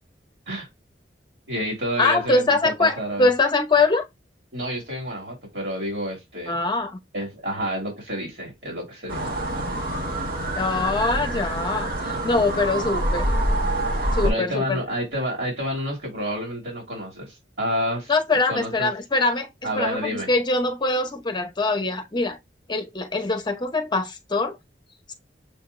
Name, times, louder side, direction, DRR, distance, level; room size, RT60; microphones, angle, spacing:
voice 1, 1.5-3.3 4.5-6.6 7.1-9.3 14.0-18.1 18.5-18.9 19.6-20.3, equal, 90° right, 2.8 m, -29 dB
voice 2, 2.0-4.1 6.5-7.0 10.6-13.3 14.1-14.8 18.1-19.5 19.8-22.4 22.7-24.6 25.1-25.2, left 3 dB, 25° left, 0.8 m, -23 dB
sound 1, 9.1-14.3, right 1 dB, 55° right, 1.7 m, -26 dB
6.8 x 2.7 x 2.2 m
head